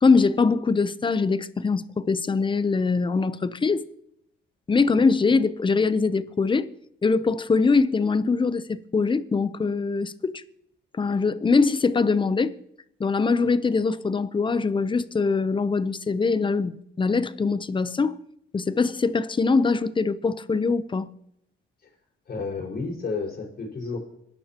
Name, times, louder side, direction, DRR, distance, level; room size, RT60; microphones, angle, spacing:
voice 1, 0.0-3.9 4.7-6.7 7.0-10.4 10.9-12.6 13.0-18.2 18.5-21.1, left 4 dB, 25° left, 0.7 m, -23 dB
voice 2, 22.3-24.0, left 4 dB, 50° left, 4.9 m, -31 dB
26.0 x 11.5 x 3.0 m
cardioid pair, 90°, 20 cm